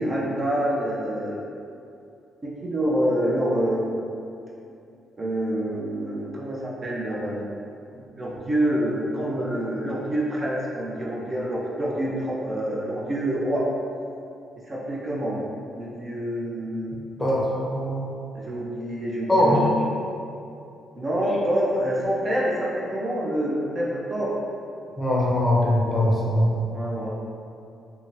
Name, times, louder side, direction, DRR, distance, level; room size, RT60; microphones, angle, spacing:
voice 1, 0.0-1.5 2.4-4.0 5.2-7.4 7.9-13.7 14.5-15.4 15.8-16.9 18.3-19.7 20.9-24.3 26.7-27.1, right 1 dB, 30° right, -5 dB, 0.5 m, -27 dB
voice 2, 17.2-18.0 19.3-19.7 25.0-26.6, left 1 dB, 10° left, -5 dB, 0.6 m, -21 dB
3.7 x 2.1 x 2.6 m, 2.6 s
cardioid pair, 90°, 0 cm